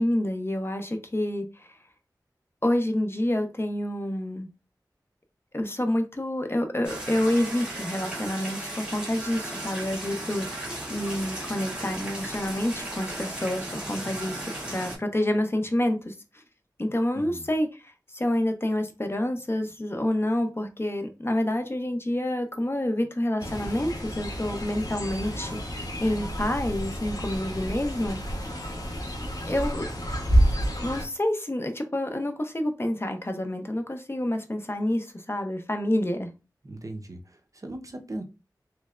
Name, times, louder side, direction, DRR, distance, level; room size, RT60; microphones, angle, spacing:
voice 1, 0.0-1.8 2.6-4.5 5.5-16.4 16.8-25.6 26.0-28.2 29.4-29.9 30.8-36.3, left 1 dB, 35° left, 0.6 m, -28 dB
sound 1, 6.8-15.0, right 1 dB, 15° right, 1.4 m, -36 dB
voice 2, 17.1-17.5 36.6-38.2, right 1 dB, 50° right, 0.7 m, -38 dB
Fowl, 23.4-31.1, equal, 60° left, 1.0 m, -29 dB
3.3 x 3.1 x 2.4 m
wide cardioid pair, 50°, 7 cm